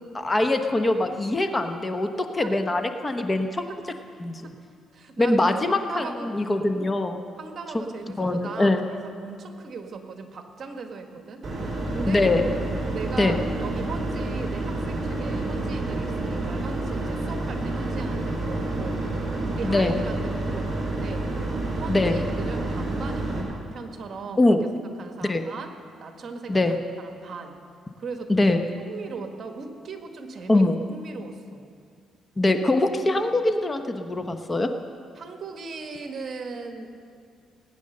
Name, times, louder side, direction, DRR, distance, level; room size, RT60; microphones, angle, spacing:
voice 1, 0.1-3.5 4.2-4.5 5.2-7.2 8.2-8.9 12.1-12.4 13.2-13.4 19.6-20.0 21.9-22.2 24.4-24.6 25.2-25.5 26.5-26.8 28.3-28.6 30.5-30.8 32.4-34.7, left 2 dB, 20° left, 6 dB, 1.0 m, -23 dB
voice 2, 4.9-6.3 7.4-11.4 11.9-12.2 12.9-19.0 19.5-21.3 21.7-24.6 25.0-25.7 26.0-26.6 27.0-27.6 28.0-31.7 35.1-36.9, right 4 dB, 50° right, 5 dB, 1.5 m, -38 dB
sound 1, 11.4-23.4, right 2 dB, 30° right, 4.8 m, -29 dB
19.0 x 9.1 x 6.6 m, 2.3 s
cardioid pair, 90°, 0 cm